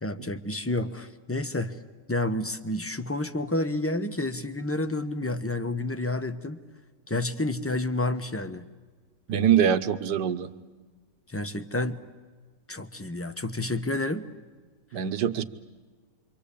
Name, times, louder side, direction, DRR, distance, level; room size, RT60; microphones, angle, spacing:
voice 1, 0.0-1.8 2.1-6.6 7.1-8.7 11.3-12.0 12.7-14.3, left 2 dB, 10° left, 9 dB, 0.6 m, -30 dB
voice 2, 9.3-10.5 14.9-15.4, right 9 dB, 70° right, 11 dB, 1.6 m, -23 dB
28.0 x 25.0 x 8.4 m, 1.4 s
omnidirectional pair, 1.9 m